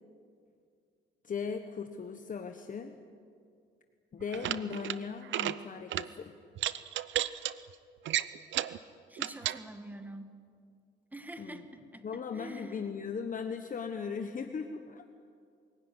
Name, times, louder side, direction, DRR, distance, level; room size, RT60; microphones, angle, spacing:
voice 1, 1.2-2.9 4.1-6.4 11.4-11.6 12.0-15.2, left 6 dB, 40° left, 6 dB, 1.3 m, -38 dB
sound 1, 4.2-5.0 5.3-5.6 5.9-6.1 6.6-7.5 8.1-8.8 9.2-9.6, right 12 dB, 70° right, 0.7 m, -32 dB
voice 2, 9.1-10.4 11.1-13.0, right 1 dB, 10° right, 8 dB, 1.9 m, -46 dB
23.0 x 16.5 x 9.9 m, 2.3 s
cardioid pair, 90°, 20 cm